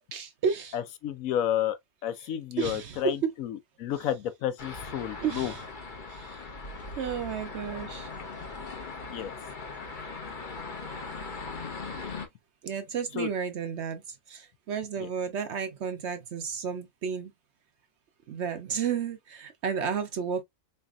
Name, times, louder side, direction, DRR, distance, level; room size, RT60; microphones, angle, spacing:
voice 1, 0.0-0.8 2.2-3.3 3.9-4.1 5.2-5.7 6.1-6.5 7.0-8.1 12.6-17.3 18.3-20.4, right 7 dB, 60° right, 0.8 m, -32 dB
voice 2, 0.7-1.8 2.0-5.5 9.1-9.3 13.2-13.3, left 11 dB, 75° left, 1.0 m, -31 dB
sound 1, 4.6-12.3, left 3 dB, 40° left, 0.8 m, -39 dB
4.1 x 3.2 x 2.3 m
omnidirectional pair, 1.5 m